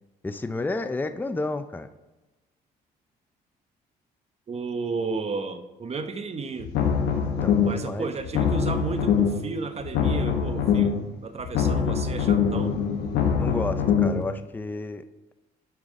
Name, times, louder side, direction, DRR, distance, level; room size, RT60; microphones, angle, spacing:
voice 1, 0.2-1.9 7.2-8.1 13.4-15.0, left 2 dB, 10° left, 10 dB, 0.5 m, -31 dB
voice 2, 4.5-6.8 7.6-12.7, right 4 dB, 40° right, 8 dB, 1.0 m, -33 dB
sound 1, 6.6-7.9 8.2-9.5 9.8-11.1 11.4-14.2, left 7 dB, 90° left, 1.1 m, -23 dB
10.5 x 5.8 x 3.7 m, 1.1 s
cardioid pair, 90°, 17 cm